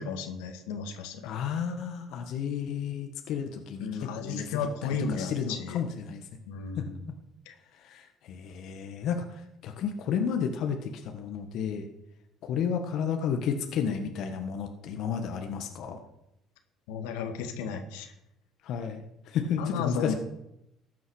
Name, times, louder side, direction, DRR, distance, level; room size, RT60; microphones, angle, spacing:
voice 1, 0.0-1.3 3.8-5.8 6.5-7.0 7.5-7.6 16.9-18.1 19.6-20.1, left 6 dB, 90° left, 6 dB, 1.9 m, -34 dB
voice 2, 1.2-4.6 5.1-6.3 6.8-6.9 7.7-11.9 12.4-16.0 18.6-20.1, left 7 dB, 65° left, 5 dB, 1.6 m, -32 dB
14.5 x 9.2 x 6.4 m, 0.84 s
supercardioid pair, 80°, 0 cm